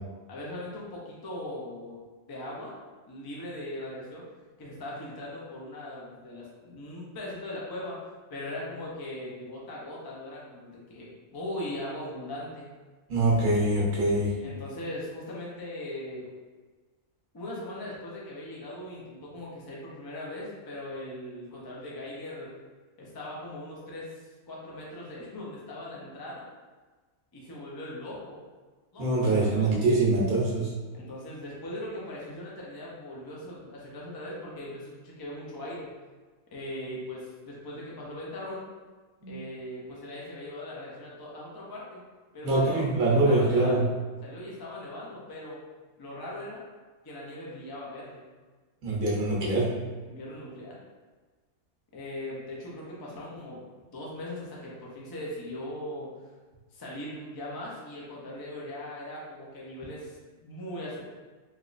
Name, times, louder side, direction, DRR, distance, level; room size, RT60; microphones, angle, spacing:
voice 1, 0.3-2.0 2.3-2.8 3.1-4.3 4.6-8.0 8.3-12.7 14.4-16.3 17.3-22.5 23.0-26.5 27.3-28.4 28.9-29.7 30.9-35.9 36.5-38.7 39.3-42.0 42.3-43.9 44.2-45.6 46.0-46.6 47.0-48.2 50.1-50.8 51.9-53.6 53.9-56.1 56.7-61.1, left 1 dB, 25° left, -5 dB, 0.5 m, -39 dB
voice 2, 13.1-14.3 29.0-30.7 39.2-39.4 42.4-43.9 48.8-49.8, right 2 dB, 80° right, -4 dB, 1.4 m, -24 dB
3.5 x 3.0 x 2.5 m, 1.3 s
omnidirectional pair, 1.4 m